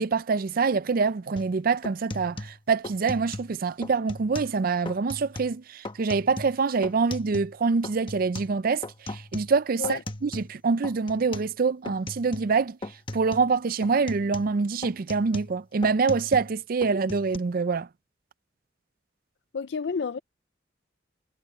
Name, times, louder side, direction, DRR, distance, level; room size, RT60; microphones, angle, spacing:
voice 1, 0.0-12.8 13.1-17.9, right 4 dB, 50° right, 0.4 m, -25 dB
sound 1, 1.4-1.5 1.8-3.5 3.8-4.6 4.9-5.6 5.8-7.6 7.8-10.6 10.8-11.5 11.8-12.6 12.8-13.5 13.8-16.5 16.8-17.4, left 1 dB, 25° left, 1.2 m, -38 dB
voice 2, 19.5-20.2, left 5 dB, 60° left, 0.5 m, -30 dB
head